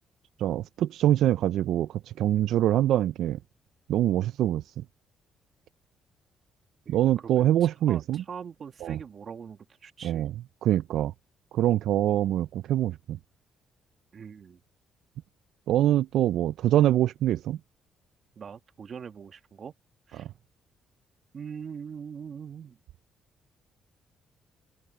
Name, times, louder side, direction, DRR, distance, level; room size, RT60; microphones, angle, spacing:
voice 1, 0.4-1.9 2.2-3.4 3.9-4.6 6.9-8.2 8.8-9.0 10.0-10.3 10.6-11.1 11.5-13.2 15.7-17.6, right 12 dB, 80° right, 0.3 m, -24 dB
voice 2, 6.8-10.2 14.1-14.6 18.4-19.7 20.1-20.3 21.3-22.8, right 7 dB, 50° right, 1.5 m, -42 dB
cardioid pair, 90°, 0 cm